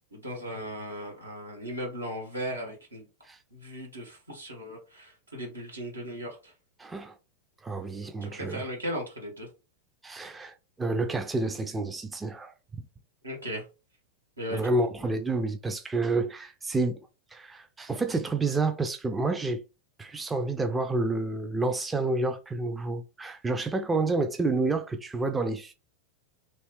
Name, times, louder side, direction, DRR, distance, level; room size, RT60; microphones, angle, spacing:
voice 1, 0.1-3.0 3.5-6.5 8.2-9.5 13.2-13.6 14.4-14.7, equal, 80° right, 1.3 m, -37 dB
voice 2, 6.8-7.2 7.6-8.7 10.0-12.5 14.5-17.0 17.3-19.6 20.0-25.7, right 3 dB, 10° right, 0.4 m, -29 dB
3.0 x 2.7 x 3.2 m
figure-of-eight pair, 90°, 0 cm